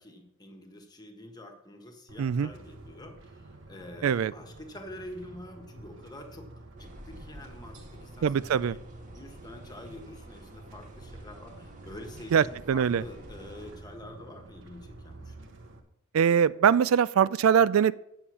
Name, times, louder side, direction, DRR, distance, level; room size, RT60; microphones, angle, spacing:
voice 1, 0.0-6.5 6.8-8.8 9.1-15.5, left 1 dB, 20° left, 4 dB, 1.4 m, -46 dB
sound 1, 2.1-15.8, right 2 dB, 65° right, 1.2 m, -49 dB
voice 2, 2.2-2.5 4.0-4.3 8.2-8.8 12.3-13.0 16.1-17.9, right 7 dB, 80° right, 18 dB, 0.4 m, -22 dB
sound 2, 6.8-13.8, right 1 dB, 40° right, 1.6 m, -50 dB
8.9 x 7.1 x 6.2 m, 0.79 s
head